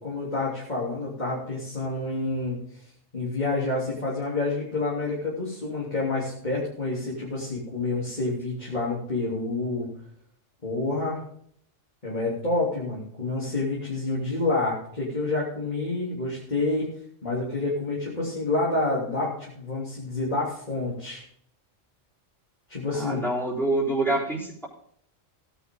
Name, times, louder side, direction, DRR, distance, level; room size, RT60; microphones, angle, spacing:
voice 1, 0.0-2.8 3.1-9.9 10.6-11.2 12.0-16.9 17.2-21.2 22.7-23.2, left 2 dB, 35° left, -5 dB, 3.4 m, -28 dB
voice 2, 22.9-24.7, right 2 dB, ahead, -5 dB, 4.0 m, -26 dB
16.5 x 10.0 x 3.8 m, 0.65 s
omnidirectional pair, 1.3 m